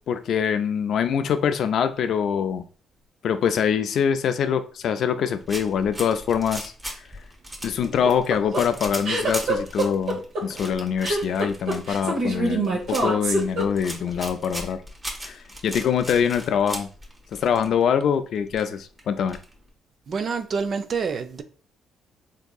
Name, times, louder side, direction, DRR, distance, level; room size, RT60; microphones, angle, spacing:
voice 1, 0.1-2.6 3.2-6.7 7.6-14.8 15.2-16.9 17.3-19.4, left 7 dB, 65° left, 0.3 m, -24 dB
sound 1, 5.4-17.8 18.1-18.2 18.4-19.7, equal, 20° right, 0.8 m, -38 dB
sound 2, 7.8-14.1, right 2 dB, 85° right, 0.9 m, -25 dB
voice 2, 20.1-21.4, right 5 dB, 50° right, 0.3 m, -27 dB
3.6 x 2.6 x 2.3 m
cardioid pair, 90°, 0 cm